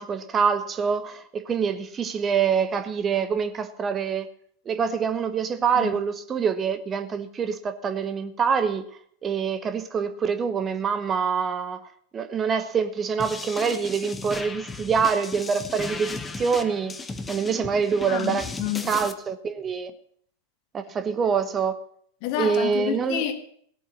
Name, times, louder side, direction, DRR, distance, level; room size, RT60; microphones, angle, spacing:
voice 1, 0.0-4.3 4.7-8.8 9.2-11.8 12.1-17.0 17.3-18.5 18.8-19.9 20.7-21.7 22.4-23.2, right 6 dB, 25° right, 1.0 m, -25 dB
sound 1, 13.2-19.1, left 3 dB, 15° left, 1.2 m, -36 dB
voice 2, 18.1-19.0 22.2-23.3, left 11 dB, 45° left, 1.8 m, -29 dB
17.5 x 8.6 x 6.2 m
figure-of-eight pair, 90°, 0 cm